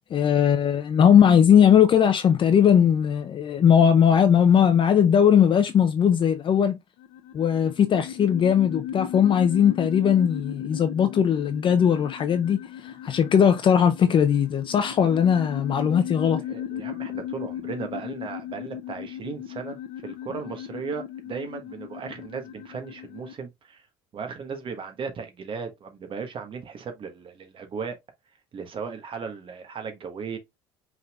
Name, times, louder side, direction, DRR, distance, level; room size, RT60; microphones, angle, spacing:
voice 1, 0.1-6.8 7.3-16.4, left 8 dB, 40° left, 0.6 m, -19 dB
sound 1, 7.0-23.3, left 10 dB, 75° left, 0.8 m, -36 dB
voice 2, 16.3-19.8 20.0-23.8 24.1-28.0 28.5-30.4, right 5 dB, 45° right, 1.4 m, -36 dB
5.4 x 3.6 x 2.4 m
hypercardioid pair, 75°, 12 cm